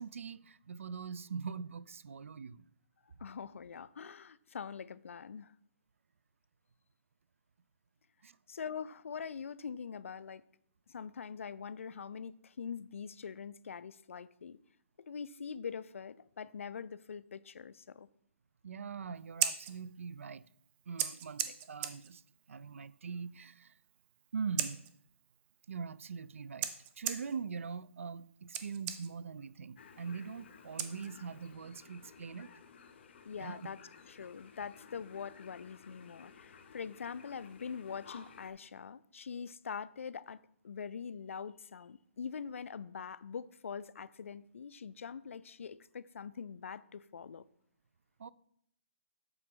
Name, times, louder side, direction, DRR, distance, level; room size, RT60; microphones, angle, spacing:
voice 1, 0.0-2.7 8.2-8.4 18.6-20.4 20.9-22.2 22.5-23.7 24.3-24.8 25.7-32.5 33.4-33.6 48.2-48.3, right 6 dB, 80° right, 0.4 m, -42 dB
voice 2, 3.2-5.5 8.5-10.4 10.9-14.6 15.0-18.1 33.3-33.8 34.1-47.4, left 6 dB, 80° left, 0.4 m, -43 dB
Scissors, 19.2-31.5, right 11 dB, 20° right, 0.5 m, -42 dB
sound 1, 29.8-38.5, left 6 dB, 55° left, 0.9 m, -56 dB
7.7 x 5.9 x 3.7 m
hypercardioid pair, 150°, 7 cm